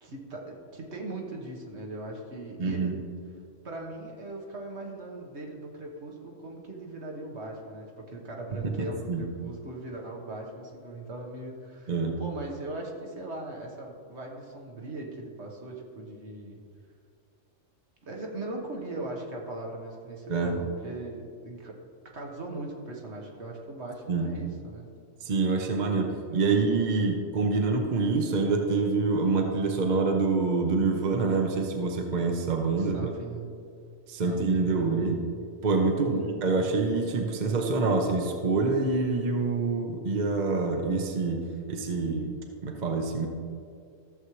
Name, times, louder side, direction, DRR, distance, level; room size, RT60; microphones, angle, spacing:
voice 1, 0.0-2.9 3.6-11.9 12.2-16.6 18.0-21.8 22.1-24.9 25.9-26.5 32.8-33.5 34.3-35.1 36.0-36.3, right 2 dB, 60° right, -1 dB, 1.6 m, -39 dB
voice 2, 2.6-2.9 8.6-8.7 9.1-9.2 11.9-12.2 20.3-20.6 24.1-24.3 25.2-33.0 34.1-35.1 35.6-41.4 41.7-42.3 42.6-43.3, right 4 dB, 40° right, 2 dB, 0.8 m, -26 dB
14.5 x 7.2 x 3.2 m, 2.3 s
omnidirectional pair, 1.4 m